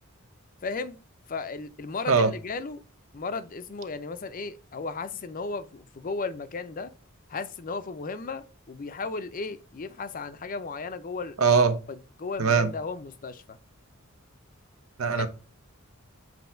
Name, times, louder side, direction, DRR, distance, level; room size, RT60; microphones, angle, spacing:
voice 1, 0.6-1.0 1.3-2.8 3.1-6.9 7.3-11.3 11.9-13.6 15.2-15.3, left 4 dB, 40° left, 0.5 m, -35 dB
voice 2, 11.4-11.8 12.4-12.7 15.0-15.3, right 5 dB, 80° right, 0.8 m, -21 dB
7.8 x 2.8 x 4.4 m
head